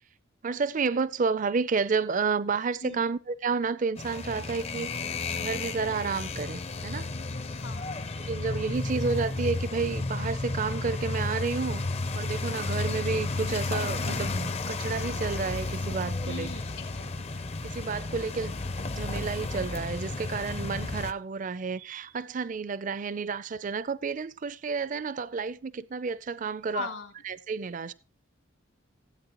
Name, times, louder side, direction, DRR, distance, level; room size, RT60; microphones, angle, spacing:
voice 1, 0.4-7.1 8.2-11.8 12.1-16.5 17.6-18.5 18.8-26.9 27.2-27.9, right 5 dB, 40° right, 0.4 m, -31 dB
sound 1, 4.0-21.1, left 3 dB, 30° left, 0.5 m, -32 dB
voice 2, 7.6-8.0 16.2-17.4 26.7-27.1, left 4 dB, 75° left, 2.6 m, -39 dB
17.0 x 8.6 x 3.0 m
head